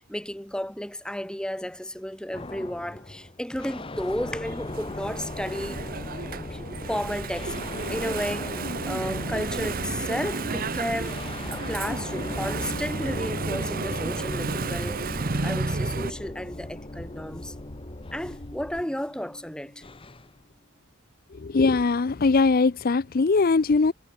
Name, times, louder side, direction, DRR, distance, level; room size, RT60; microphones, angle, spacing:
voice 1, 0.0-5.9 6.3-6.6 6.9-7.5 7.9-8.6 8.8-17.5 18.1-19.8, equal, 5° left, 1.2 m, -33 dB
sound 1, 2.3-20.4, left 2 dB, 25° left, 0.9 m, -39 dB
Engine / Mechanisms, 4.0-16.1, right 3 dB, 40° right, 0.9 m, -32 dB
sound 2, 4.1-18.8, left 1 dB, 80° left, 3.3 m, -45 dB
voice 2, 21.3-23.9, left 4 dB, 45° left, 0.5 m, -21 dB
head